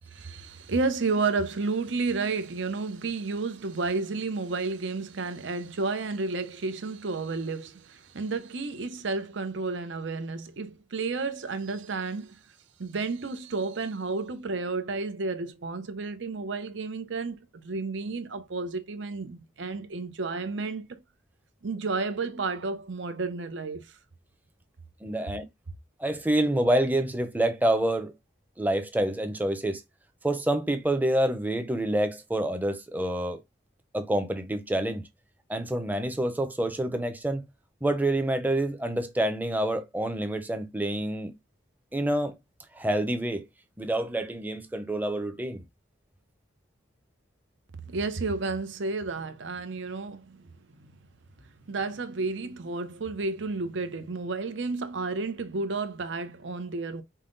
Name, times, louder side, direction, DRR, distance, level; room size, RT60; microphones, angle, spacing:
voice 1, 0.1-12.4 12.8-21.0 21.6-23.9 47.9-50.5 50.8-50.9 51.7-57.0, right 3 dB, 75° right, 0.7 m, -31 dB
voice 2, 25.0-25.4 26.0-28.1 28.6-29.8 30.2-33.4 33.9-35.1 35.5-37.4 37.8-41.3 41.9-42.3 42.7-43.5 43.8-45.6, right 1 dB, 10° right, 0.6 m, -27 dB
5.6 x 2.1 x 3.8 m
head